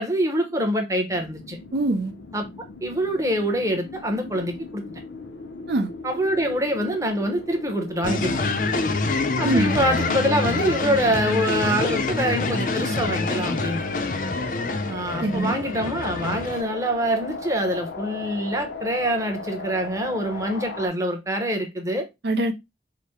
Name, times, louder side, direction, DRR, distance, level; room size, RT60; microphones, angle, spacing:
voice 1, 0.0-1.6 2.3-2.4 2.8-4.8 6.0-8.4 9.4-13.8 14.8-22.1, equal, 15° right, 0.8 m, -25 dB
sound 1, 1.1-20.9, left 3 dB, 85° left, 0.7 m, -37 dB
voice 2, 1.7-2.1 5.7-5.9 9.4-9.8 15.2-15.5 22.2-22.5, right 2 dB, 65° right, 0.5 m, -23 dB
sound 2, 8.0-16.6, left 3 dB, 45° left, 0.5 m, -26 dB
5.0 x 2.1 x 4.2 m
head